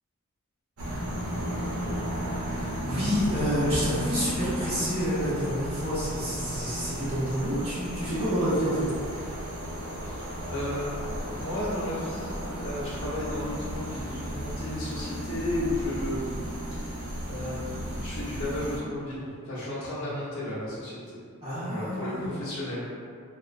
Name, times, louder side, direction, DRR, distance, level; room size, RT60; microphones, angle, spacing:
sound 1, 0.8-18.8, equal, 90° right, 0.6 m, -34 dB
voice 1, 2.5-8.9 20.0-20.1 21.4-22.3, equal, 30° right, -13 dB, 1.2 m, -28 dB
voice 2, 10.1-16.4 16.7-21.2 21.6-22.8, left 1 dB, 75° left, -10 dB, 1.0 m, -34 dB
2.9 x 2.3 x 2.5 m, 2.3 s
head